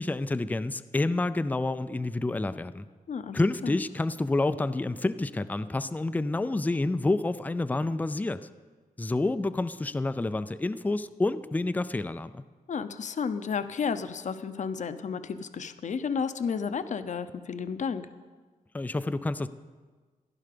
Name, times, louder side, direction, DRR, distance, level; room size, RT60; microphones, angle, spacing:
voice 1, 0.0-2.9 3.3-8.5 9.0-12.4 18.7-19.5, left 2 dB, 10° left, 13 dB, 0.4 m, -28 dB
voice 2, 3.1-3.8 12.7-18.1, left 6 dB, 55° left, 11 dB, 0.8 m, -32 dB
15.0 x 11.0 x 6.8 m, 1.4 s
wide cardioid pair, 140°, 15 cm